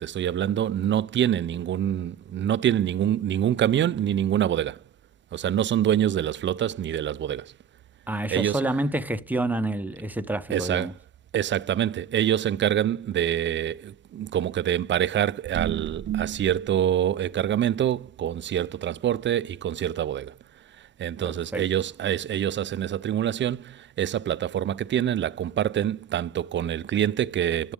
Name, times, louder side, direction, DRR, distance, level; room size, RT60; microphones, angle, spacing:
voice 1, 0.0-4.8 5.3-7.5 8.3-8.6 10.5-10.9 11.3-27.7, right 10 dB, 40° right, 0.4 m, -26 dB
voice 2, 8.1-10.9 21.2-21.6, right 1 dB, 5° right, 0.7 m, -28 dB
10.5 x 7.2 x 3.6 m
cardioid pair, 90°, 30 cm